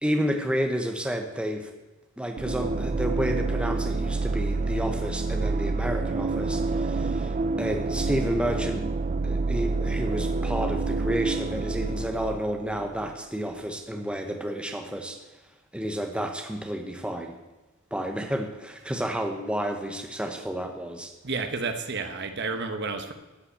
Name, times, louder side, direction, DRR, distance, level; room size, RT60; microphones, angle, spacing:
voice 1, 0.0-1.7 2.2-8.9 9.2-15.2 15.7-17.3 17.9-21.1, equal, 5° right, 4 dB, 0.9 m, -30 dB
sound 1, 2.4-13.1, right 3 dB, 35° right, 0.4 m, -28 dB
voice 2, 21.2-23.1, right 4 dB, 50° right, 7 dB, 1.1 m, -31 dB
13.0 x 5.7 x 8.5 m, 1.1 s
head